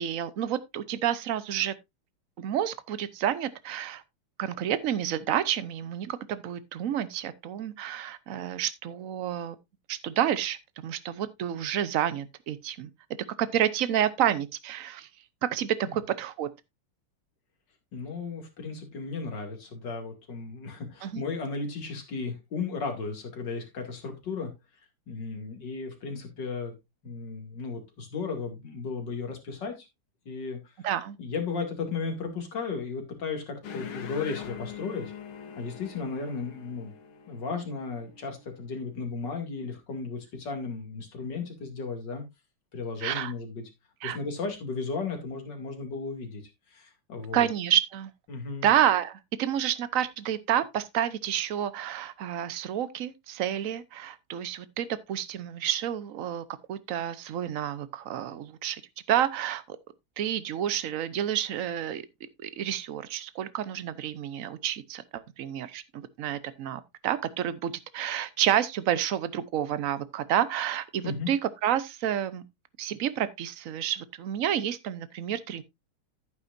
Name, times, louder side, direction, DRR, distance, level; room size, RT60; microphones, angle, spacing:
voice 1, 0.0-1.7 2.4-4.0 4.4-9.6 9.9-12.9 13.4-15.1 15.4-16.5 21.0-21.2 30.8-31.2 43.0-43.3 44.0-44.2 47.3-48.1 48.6-58.8 59.1-59.8 60.2-62.0 62.4-72.4 72.8-75.6, right 10 dB, 65° right, 0.8 m, -29 dB
voice 2, 17.9-24.5 25.1-26.7 27.0-29.9 30.3-30.6 31.2-35.1 35.6-36.9 37.3-42.2 42.7-43.7 44.0-46.4 46.7-47.5 48.3-48.7 71.0-71.3, left 4 dB, 55° left, 2.9 m, -35 dB
sound 1, 33.6-38.6, left 7 dB, 75° left, 2.1 m, -43 dB
11.0 x 9.6 x 2.5 m
omnidirectional pair, 2.4 m